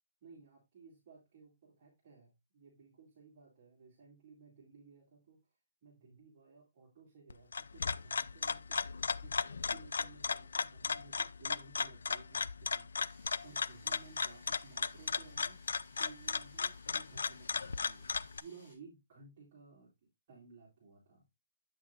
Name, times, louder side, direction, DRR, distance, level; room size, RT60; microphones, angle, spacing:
voice 1, 0.2-18.1 18.4-21.2, right 4 dB, 30° right, -7 dB, 2.7 m, -58 dB
sound 1, 7.3-18.4, left 5 dB, 80° left, 0.4 m, -36 dB
sound 2, 13.0-18.7, left 2 dB, 30° left, 3.6 m, -62 dB
8.4 x 6.2 x 2.6 m, 0.21 s
hypercardioid pair, 175°, 0 cm